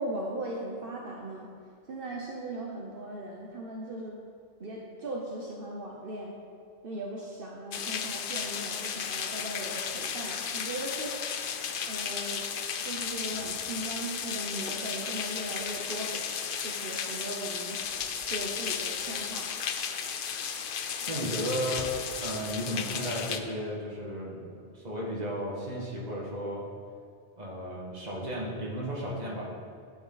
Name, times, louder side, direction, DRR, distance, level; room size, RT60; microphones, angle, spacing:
voice 1, 0.0-1.5 1.9-4.2 4.6-6.4 6.8-11.2 11.9-12.5 12.8-16.2 16.6-17.8 18.3-19.5, right 1 dB, 60° right, -2 dB, 1.2 m, -38 dB
sound 1, 7.7-23.4, left 7 dB, 60° left, 0.8 m, -34 dB
voice 2, 21.0-26.6 27.4-29.4, equal, 40° right, -4 dB, 2.0 m, -34 dB
11.5 x 8.6 x 4.0 m, 2.2 s
omnidirectional pair, 1.1 m